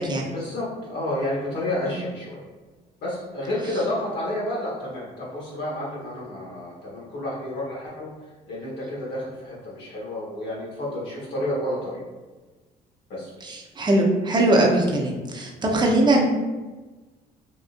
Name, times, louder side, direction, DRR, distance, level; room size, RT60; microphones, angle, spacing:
voice 1, 0.3-2.4 3.0-8.1 8.5-12.0 13.1-13.3, left 1 dB, 70° left, -7 dB, 1.2 m, -30 dB
voice 2, 13.4-16.2, right 1 dB, 25° right, -1 dB, 0.7 m, -21 dB
3.6 x 2.5 x 2.5 m, 1.3 s
supercardioid pair, 85°, 17 cm